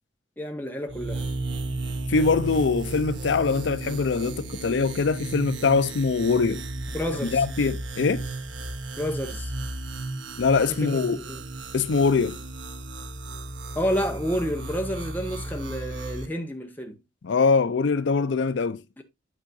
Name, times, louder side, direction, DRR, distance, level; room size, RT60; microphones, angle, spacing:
voice 1, 0.4-1.3 6.9-7.4 9.0-9.5 10.8-11.4 13.7-17.0 19.0-19.1, equal, 10° left, 1.3 m, -30 dB
sound 1, 0.9-16.3, right 2 dB, 80° right, 1.1 m, -34 dB
voice 2, 2.1-6.6 7.3-8.3 10.4-11.2 11.7-12.4 17.2-18.8, left 4 dB, 70° left, 0.5 m, -23 dB
8.5 x 7.2 x 2.6 m
head